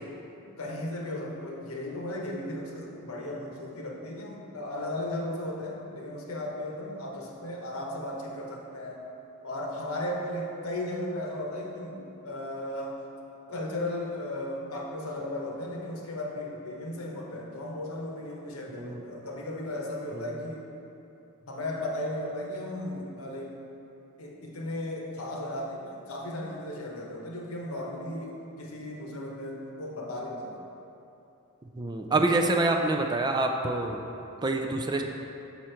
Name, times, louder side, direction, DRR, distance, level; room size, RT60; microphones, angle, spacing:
voice 1, 0.4-9.0 9.4-13.0 13.5-20.6 21.4-23.5 24.2-30.5, left 1 dB, 75° left, -1 dB, 1.0 m, -35 dB
voice 2, 31.8-34.0 34.4-35.0, right 2 dB, 20° right, 3 dB, 0.3 m, -26 dB
6.3 x 5.6 x 4.4 m, 2.8 s
head